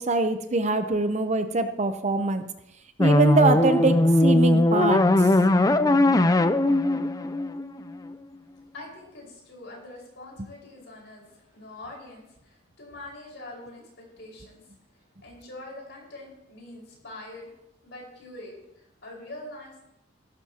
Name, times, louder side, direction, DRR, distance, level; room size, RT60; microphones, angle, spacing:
voice 1, 0.0-2.4 3.0-4.0 4.2-5.1, right 3 dB, 35° right, 8 dB, 0.7 m, -23 dB
sound 1, 3.0-8.1, left 1 dB, 20° left, 0.4 m, -20 dB
voice 2, 8.7-14.6 15.2-17.5 17.8-19.8, left 2 dB, 60° left, -2 dB, 5.0 m, -44 dB
16.5 x 13.0 x 2.9 m, 0.82 s
head